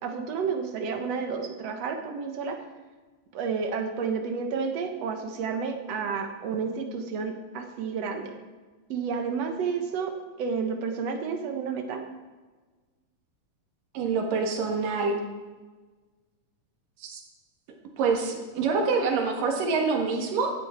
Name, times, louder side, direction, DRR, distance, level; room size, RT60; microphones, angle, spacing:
voice 1, 0.0-2.6 3.3-8.4 8.9-12.0, right 5 dB, 60° right, 5 dB, 2.1 m, -31 dB
voice 2, 13.9-15.2 17.0-17.2 18.0-20.5, right 4 dB, 75° right, 3 dB, 3.3 m, -26 dB
17.0 x 11.0 x 4.5 m, 1.3 s
omnidirectional pair, 3.9 m